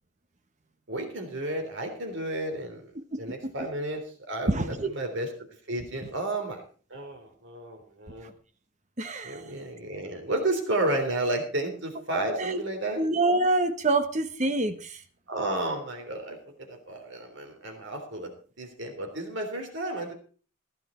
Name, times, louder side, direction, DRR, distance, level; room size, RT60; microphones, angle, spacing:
voice 1, 0.9-2.9 3.2-4.0 4.3-5.3 5.7-6.6 6.9-8.3 9.2-13.0 15.3-18.3 18.6-20.1, right 1 dB, 60° right, 4 dB, 3.4 m, -32 dB
voice 2, 4.5-4.9 9.0-9.5 12.4-12.6 13.0-15.0, right 2 dB, 35° right, 9 dB, 1.2 m, -26 dB
15.5 x 10.5 x 4.4 m, 0.40 s
head